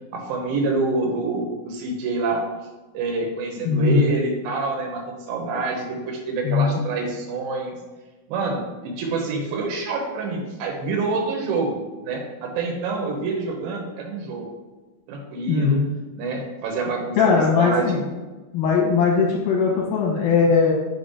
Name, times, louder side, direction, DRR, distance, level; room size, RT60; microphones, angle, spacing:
voice 1, 0.1-2.5 2.9-7.8 8.3-14.5 15.1-15.8 16.2-17.9, right 3 dB, 75° right, 0 dB, 2.6 m, -27 dB
voice 2, 3.6-4.0 6.4-6.8 15.5-15.9 17.2-18.0 18.5-20.7, left 5 dB, 90° left, -2 dB, 2.9 m, -19 dB
6.7 x 3.9 x 5.4 m, 1.2 s
omnidirectional pair, 4.2 m